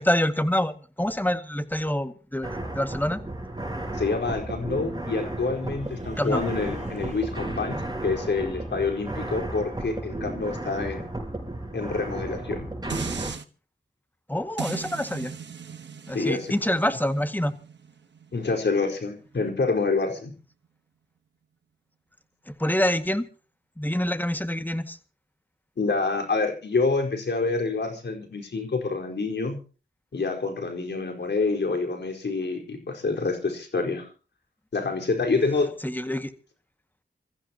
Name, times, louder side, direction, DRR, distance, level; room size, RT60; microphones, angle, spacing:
voice 1, 0.0-3.2 6.2-6.4 14.3-15.3 16.1-17.5 22.5-23.2 23.8-25.0 35.8-36.3, left 1 dB, 10° left, 2.0 m, -26 dB
sound 1, 2.4-13.3, right 1 dB, 25° right, 5.6 m, -34 dB
voice 2, 3.9-11.1 11.7-12.7 16.1-16.4 18.3-20.3 25.8-29.6 30.1-34.1 34.7-35.7, left 3 dB, 75° left, 4.5 m, -27 dB
sound 2, 5.5-7.6, right 2 dB, 40° right, 4.5 m, -44 dB
sound 3, 12.9-13.4 14.6-19.7 20.2-20.3, right 6 dB, 85° right, 1.2 m, -39 dB
27.0 x 15.0 x 3.0 m
cardioid pair, 50°, 18 cm